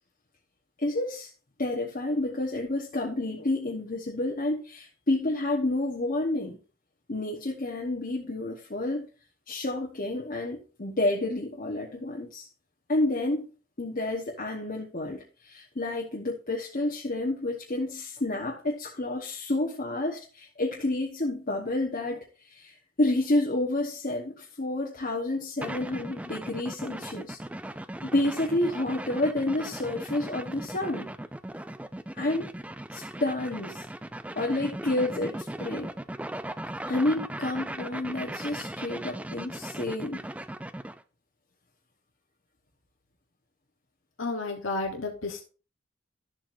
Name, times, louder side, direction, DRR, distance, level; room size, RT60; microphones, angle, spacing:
voice 1, 0.8-1.3 1.6-6.6 7.1-9.1 9.5-12.5 12.9-13.5 13.8-27.4 28.0-31.1 32.1-32.5 32.9-33.8 34.3-35.9 36.8-40.3, left 2 dB, 45° left, 1.2 m, -29 dB
sound 1, 25.6-41.0, right 1 dB, 5° right, 0.3 m, -38 dB
voice 2, 44.2-45.4, left 3 dB, 75° left, 1.1 m, -31 dB
12.0 x 7.4 x 2.6 m
head